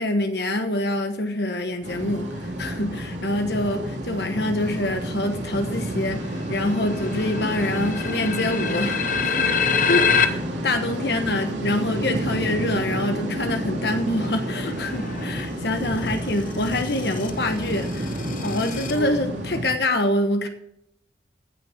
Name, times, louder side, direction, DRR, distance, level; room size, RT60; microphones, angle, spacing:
voice 1, 0.0-20.5, left 1 dB, 65° left, 6 dB, 1.2 m, -26 dB
sound 1, 1.8-19.7, right 1 dB, 80° right, 3.1 m, -30 dB
sound 2, 6.2-6.3 6.5-10.3 14.5-15.5 16.3-19.0, left 7 dB, 45° left, 0.9 m, -26 dB
16.5 x 6.3 x 4.4 m, 0.73 s
head